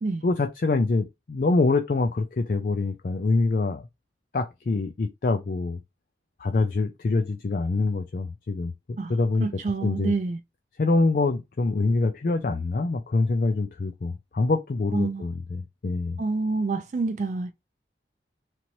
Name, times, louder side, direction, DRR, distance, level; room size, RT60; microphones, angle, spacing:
voice 1, 0.2-3.8 4.3-5.8 6.4-8.7 9.1-10.1 10.8-16.2, left 3 dB, 50° left, 0.4 m, -25 dB
voice 2, 9.4-10.4 14.9-15.2 16.2-17.5, right 3 dB, 40° right, 0.3 m, -27 dB
3.0 x 2.6 x 3.0 m
head